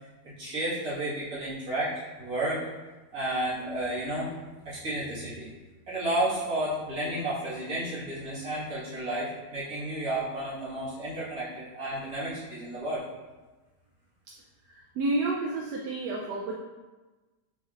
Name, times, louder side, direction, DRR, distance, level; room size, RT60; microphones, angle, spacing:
voice 1, 0.2-2.7 3.1-4.3 4.7-5.5 5.9-13.0, right 1 dB, 60° right, -10 dB, 2.1 m, -32 dB
voice 2, 15.0-16.5, right 2 dB, 85° right, -1 dB, 1.1 m, -29 dB
5.0 x 4.1 x 2.4 m, 1.2 s
omnidirectional pair, 1.7 m